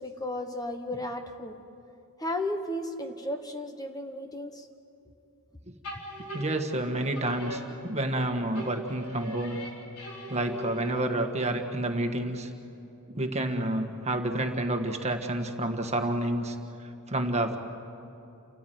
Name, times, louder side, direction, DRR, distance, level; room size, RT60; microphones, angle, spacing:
voice 1, 0.0-1.6 2.2-4.7, left 1 dB, 15° left, 6 dB, 1.1 m, -34 dB
sound 1, 5.8-8.2 8.5-11.4, equal, 90° left, 4.0 m, -40 dB
voice 2, 6.3-9.6 10.3-12.5 13.1-16.6 17.1-17.6, right 1 dB, 30° right, 5 dB, 1.6 m, -29 dB
29.0 x 14.5 x 9.3 m, 2.7 s
head